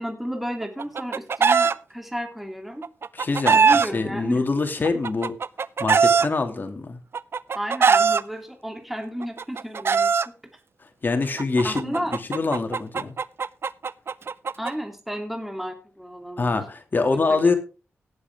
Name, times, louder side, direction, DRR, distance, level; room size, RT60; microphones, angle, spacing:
voice 1, 0.0-2.9 3.5-4.4 7.5-10.1 11.6-12.1 14.6-16.6 17.0-17.5, equal, 5° right, 3.1 m, -32 dB
Chicken rooster, 0.6-1.7 2.8-3.9 4.8-6.3 7.1-8.2 9.2-10.3 11.4-14.7, right 5 dB, 60° right, 0.6 m, -20 dB
voice 2, 3.1-5.3 5.8-7.0 11.0-13.2 16.4-17.5, left 3 dB, 45° left, 2.5 m, -25 dB
17.0 x 7.8 x 3.7 m
cardioid pair, 65°, 5 cm